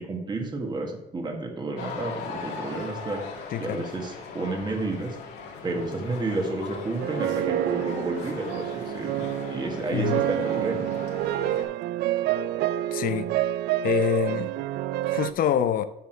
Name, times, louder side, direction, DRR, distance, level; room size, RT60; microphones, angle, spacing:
voice 1, 0.0-3.2 3.6-5.2 5.6-10.9, right 2 dB, 25° right, 1.7 m, -31 dB
sound 1, 1.8-11.6, left 5 dB, 80° left, 2.1 m, -39 dB
voice 2, 3.5-3.8 9.9-10.2 12.9-13.3 13.8-14.5 15.1-15.9, left 10 dB, 55° left, 0.7 m, -25 dB
sound 2, 7.0-15.3, right 13 dB, 75° right, 0.4 m, -28 dB
8.6 x 6.0 x 4.6 m
cardioid pair, 110°, 17 cm